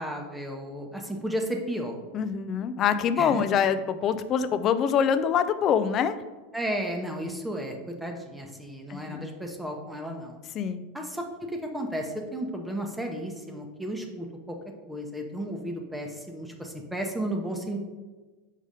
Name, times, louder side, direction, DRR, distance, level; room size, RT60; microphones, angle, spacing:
voice 1, 0.0-2.0 3.2-3.4 6.5-10.4 10.9-14.6 14.9-17.8, right 1 dB, 5° right, 2 dB, 0.8 m, -33 dB
voice 2, 2.1-6.2 8.9-9.2 10.5-10.8, left 7 dB, 40° left, 12 dB, 0.4 m, -25 dB
5.2 x 4.0 x 5.0 m, 1.3 s
hypercardioid pair, 100°, 0 cm